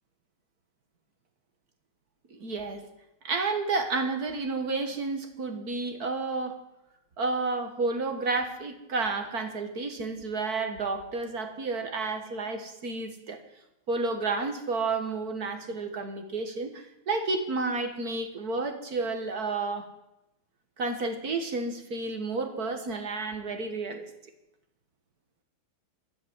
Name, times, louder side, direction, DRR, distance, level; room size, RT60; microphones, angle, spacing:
voice 1, 2.3-2.9 3.2-6.6 7.2-13.4 13.9-19.9 20.8-24.1, right 3 dB, 50° right, 6 dB, 1.9 m, -31 dB
12.0 x 12.0 x 9.8 m, 0.89 s
omnidirectional pair, 2.3 m